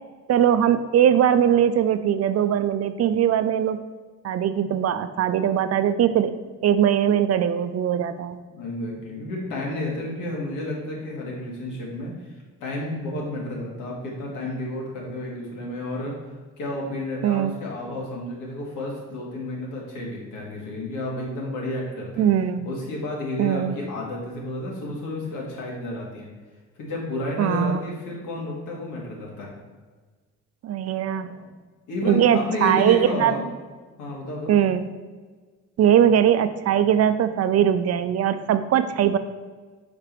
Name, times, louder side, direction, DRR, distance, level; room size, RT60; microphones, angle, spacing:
voice 1, 0.3-3.8 4.2-6.3 6.6-8.4 17.2-17.5 22.2-22.7 23.4-23.7 27.4-27.8 30.6-31.3 32.0-33.3 34.5-34.9 35.8-39.2, right 9 dB, 55° right, 11 dB, 0.5 m, -20 dB
voice 2, 8.5-12.3 12.6-16.1 16.6-22.2 22.6-26.3 26.8-29.5 31.9-33.4 34.0-34.5, left 1 dB, 85° left, -2 dB, 1.9 m, -31 dB
5.1 x 4.9 x 4.5 m, 1.4 s
cardioid pair, 90°, 30 cm